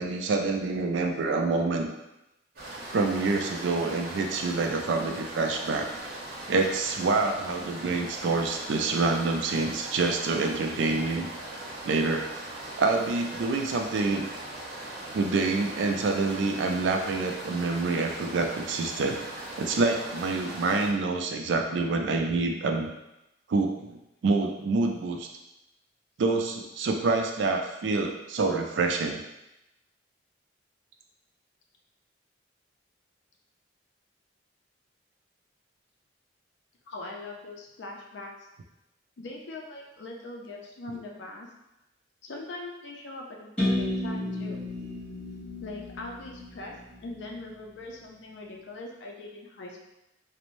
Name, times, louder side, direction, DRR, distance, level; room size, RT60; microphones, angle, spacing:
voice 1, 0.0-1.9 2.9-5.9 6.5-11.3 11.8-12.3 12.8-14.3 15.1-19.2 19.6-22.9 23.5-25.3 26.2-29.2, right 3 dB, 75° right, 4 dB, 0.3 m, -27 dB
sound 1, 2.6-20.9, right 1 dB, 55° right, 0.8 m, -40 dB
voice 2, 36.9-38.3 39.2-41.5 42.2-44.6 45.6-46.7 47.0-49.8, left 2 dB, 65° left, 0 dB, 0.4 m, -41 dB
sound 2, 43.6-47.4, left 1 dB, 5° left, 1.0 m, -32 dB
2.5 x 2.0 x 3.0 m, 0.91 s
head